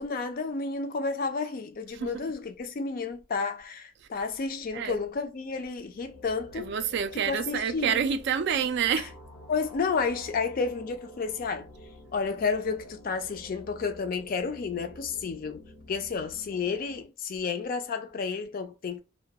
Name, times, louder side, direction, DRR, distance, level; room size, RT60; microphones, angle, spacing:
voice 1, 0.0-6.7 7.1-8.0 9.5-11.7 12.1-19.0, left 4 dB, 45° left, 0.4 m, -31 dB
sound 1, 5.5-17.0, left 1 dB, 80° left, 0.8 m, -50 dB
voice 2, 6.6-9.1, right 7 dB, 55° right, 0.3 m, -27 dB
2.2 x 2.1 x 2.7 m
head